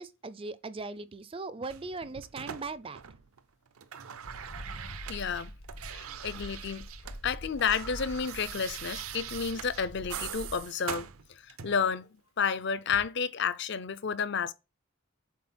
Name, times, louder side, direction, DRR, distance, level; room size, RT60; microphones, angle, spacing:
voice 1, 0.0-3.0, right 3 dB, 25° right, 0.4 m, -39 dB
sound 1, 1.7-3.4 3.7-7.2 7.5-11.9 12.9-13.1, right 9 dB, 85° right, 0.7 m, -42 dB
sound 2, 4.2-10.7, equal, 70° left, 1.8 m, -45 dB
voice 2, 5.1-5.5 5.9-6.9 7.2-12.1 12.4-14.5, left 6 dB, 55° left, 0.5 m, -31 dB
7.4 x 4.5 x 4.4 m
head